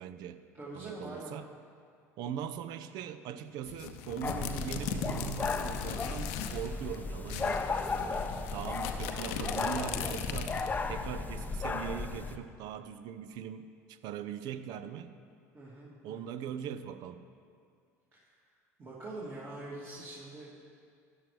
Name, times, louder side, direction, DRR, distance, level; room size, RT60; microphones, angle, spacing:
voice 1, 0.0-0.4 0.7-1.5 2.2-10.6 10.9-15.1 16.0-17.2, right 9 dB, 55° right, 12 dB, 0.5 m, -41 dB
voice 2, 0.5-1.3 15.5-16.3 18.1-18.3 18.8-20.6, right 2 dB, 30° right, -9 dB, 2.5 m, -44 dB
sound 1, 3.7-6.7 6.9-7.0 7.3-10.8, left 8 dB, 65° left, 0.7 m, -39 dB
sound 2, 4.2-12.4, left 4 dB, 20° left, 0.6 m, -35 dB
13.5 x 9.7 x 3.2 m, 2.3 s
figure-of-eight pair, 70°, 9 cm